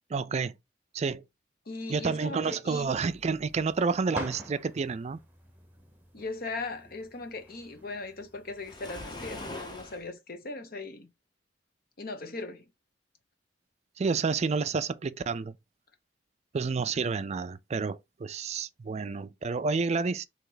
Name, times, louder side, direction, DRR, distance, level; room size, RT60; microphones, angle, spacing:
voice 1, 0.1-0.5 0.9-1.2 1.9-5.2 14.0-15.5 16.5-20.2, right 4 dB, 35° right, 0.4 m, -29 dB
voice 2, 1.7-2.9 6.1-11.1 12.0-12.7, left 3 dB, 55° left, 0.9 m, -39 dB
sound 1, 2.8-8.8, right 1 dB, 10° right, 0.8 m, -46 dB
Waves surf, 8.6-10.1, left 2 dB, 25° left, 0.9 m, -41 dB
4.4 x 3.0 x 3.9 m
head